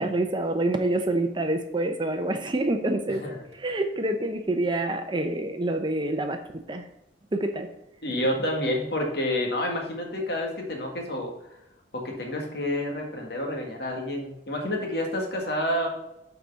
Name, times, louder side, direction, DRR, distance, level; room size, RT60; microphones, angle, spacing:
voice 1, 0.0-3.2 3.5-6.9 7.3-7.7, right 2 dB, 25° right, 6 dB, 0.6 m, -27 dB
voice 2, 3.1-3.4 8.0-11.3 11.9-15.9, left 1 dB, 60° left, 1 dB, 1.9 m, -29 dB
6.4 x 4.9 x 6.8 m, 0.86 s
head